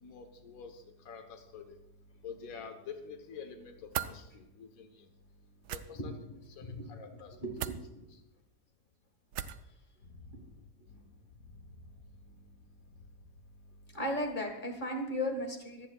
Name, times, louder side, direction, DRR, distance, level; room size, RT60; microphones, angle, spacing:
voice 1, 0.0-1.8 2.2-5.1 5.7-6.1 6.5-7.4 8.1-8.2 10.0-10.4 10.9-11.1 11.4-11.6 12.2-12.6, left 6 dB, 60° left, 6 dB, 1.5 m, -48 dB
sound 1, 3.9-4.1 5.6-5.8 7.6-7.8 9.3-9.6, right 10 dB, 75° right, 1.1 m, -36 dB
voice 2, 6.6-6.9 7.4-8.1 10.3-10.5 13.9-15.9, equal, 30° left, 3 dB, 1.8 m, -36 dB
25.5 x 8.9 x 2.3 m, 0.91 s
omnidirectional pair, 1.7 m